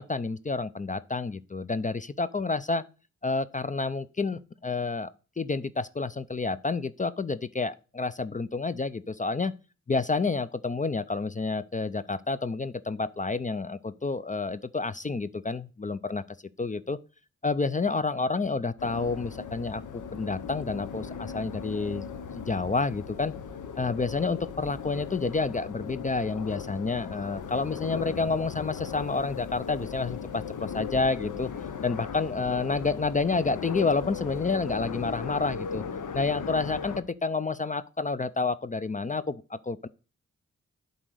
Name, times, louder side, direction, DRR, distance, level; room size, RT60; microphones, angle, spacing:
voice 1, 0.0-2.8 3.2-5.1 5.4-9.5 9.9-16.2 16.6-17.0 17.4-23.3 23.8-31.5 31.8-35.8 36.1-39.9, left 3 dB, 25° left, 0.5 m, -29 dB
sound 1, 18.8-37.0, left 7 dB, 80° left, 0.9 m, -37 dB
7.5 x 4.1 x 6.4 m
cardioid pair, 45°, 30 cm